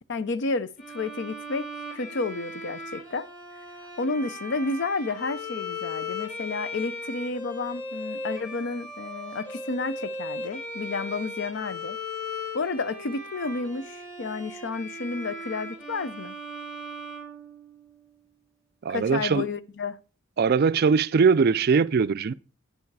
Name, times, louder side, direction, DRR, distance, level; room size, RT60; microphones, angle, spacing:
voice 1, 0.1-3.3 4.0-12.0 12.5-16.4 18.9-20.0, left 3 dB, 60° left, 0.6 m, -31 dB
Bowed string instrument, 0.8-18.0, left 2 dB, 40° left, 3.2 m, -38 dB
voice 2, 18.8-19.5 20.4-22.3, right 5 dB, 50° right, 0.4 m, -21 dB
8.7 x 7.2 x 4.7 m
head